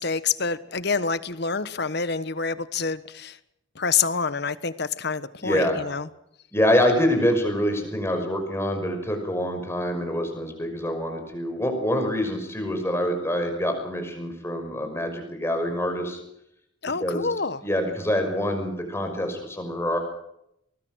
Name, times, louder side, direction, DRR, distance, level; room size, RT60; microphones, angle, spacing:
voice 1, 0.0-3.4 3.7-6.1 16.8-17.6, left 5 dB, 55° left, 1.3 m, -27 dB
voice 2, 5.4-5.8 6.5-16.2 17.0-17.3 17.6-20.0, equal, 15° left, 5.8 m, -25 dB
24.0 x 20.5 x 6.4 m
head